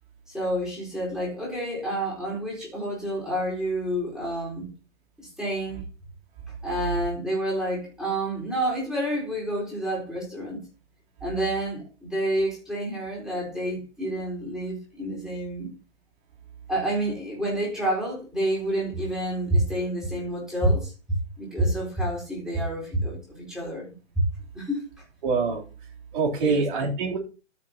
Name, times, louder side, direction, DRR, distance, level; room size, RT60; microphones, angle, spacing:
voice 1, 0.3-4.7 5.2-5.8 6.6-10.6 11.2-15.7 16.7-20.9 21.4-24.2 24.5-25.0 26.4-26.6, right 1 dB, ahead, 4.3 m, -28 dB
voice 2, 25.2-25.6 26.1-27.2, right 4 dB, 40° right, 3.3 m, -24 dB
13.5 x 6.6 x 2.8 m
hypercardioid pair, 135°, 37 cm